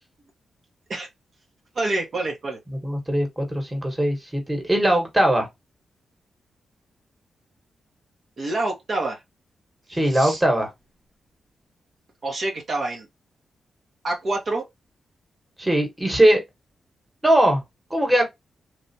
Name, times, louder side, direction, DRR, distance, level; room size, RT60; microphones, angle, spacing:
voice 1, 1.7-2.6 8.4-9.2 10.0-10.4 12.2-13.1 14.0-14.7, right 2 dB, 55° right, 0.9 m, -27 dB
voice 2, 2.8-5.5 9.9-10.7 15.6-16.4 17.2-17.6 17.9-18.3, right 1 dB, 15° right, 1.3 m, -20 dB
3.3 x 2.3 x 2.6 m
cardioid pair, 90°, 0 cm